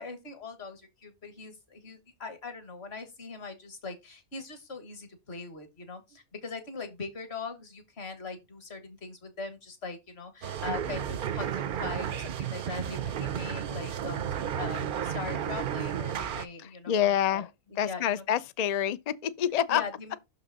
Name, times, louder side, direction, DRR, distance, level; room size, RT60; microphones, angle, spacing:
voice 1, 0.0-17.4 17.8-18.2 19.7-20.2, left 4 dB, 50° left, 1.7 m, -41 dB
sound 1, 10.4-16.5, right 9 dB, 60° right, 0.5 m, -33 dB
voice 2, 16.9-17.5 17.8-19.8, left 10 dB, 85° left, 0.3 m, -27 dB
6.2 x 5.5 x 4.0 m
omnidirectional pair, 1.4 m